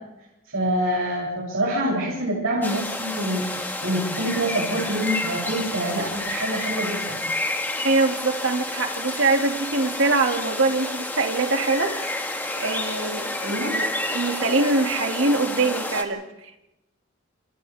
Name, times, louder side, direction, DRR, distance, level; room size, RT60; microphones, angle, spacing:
voice 1, 0.5-7.2 13.4-13.8, right 1 dB, 85° right, -5 dB, 8.0 m, -26 dB
sound 1, 2.6-16.0, left 2 dB, 10° left, 1.9 m, -30 dB
voice 2, 7.8-11.9 12.6-16.2, right 3 dB, 70° right, 3 dB, 2.5 m, -23 dB
28.5 x 27.5 x 3.6 m, 0.91 s
head